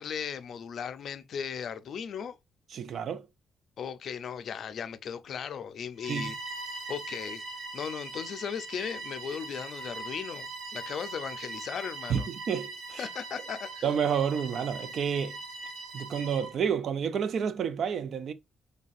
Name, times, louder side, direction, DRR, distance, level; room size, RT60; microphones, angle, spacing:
voice 1, 0.0-2.4 3.8-6.4 6.9-7.4 7.7-12.3 13.0-13.9, left 7 dB, 60° left, 0.4 m, -37 dB
voice 2, 2.7-3.3 6.1-6.3 12.1-13.1 13.8-15.4 15.9-18.3, right 7 dB, 60° right, 0.4 m, -30 dB
Bowed string instrument, 6.0-16.6, right 3 dB, 85° right, 1.0 m, -41 dB
3.9 x 3.3 x 2.5 m
cardioid pair, 90°, 0 cm